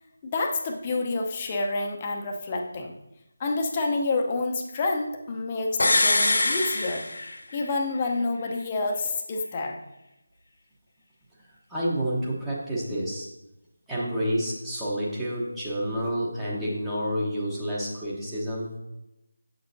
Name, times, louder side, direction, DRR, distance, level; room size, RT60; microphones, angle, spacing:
voice 1, 0.2-2.9 3.4-7.1 7.5-9.8, left 3 dB, 25° left, 2 dB, 0.7 m, -28 dB
sound 1, 5.8-7.7 8.0-8.1, left 2 dB, 60° left, 0.8 m, -23 dB
voice 2, 11.5-13.3 13.9-18.7, equal, 5° right, -7 dB, 1.1 m, -29 dB
7.7 x 6.3 x 2.7 m, 0.91 s
figure-of-eight pair, 160°, 0 cm